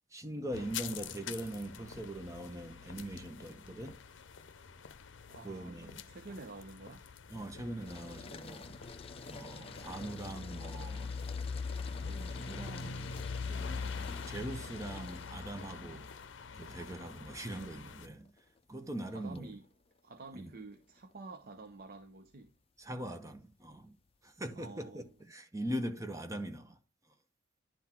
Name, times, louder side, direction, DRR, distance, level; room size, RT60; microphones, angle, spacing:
voice 1, 0.1-4.0 5.4-6.1 7.3-8.8 9.2-11.2 11.9-16.1 16.5-18.3 18.7-19.5 20.3-20.5 22.8-24.0 24.2-26.8, right 1 dB, 15° right, 0.9 m, -42 dB
sound 1, 0.5-18.1, left 5 dB, 75° left, 0.6 m, -43 dB
voice 2, 5.3-7.0 19.1-19.7 20.0-22.5 24.6-25.0, right 3 dB, 50° right, 0.7 m, -49 dB
sound 2, 7.8-25.3, left 4 dB, 30° left, 0.5 m, -52 dB
10.5 x 3.9 x 4.4 m
head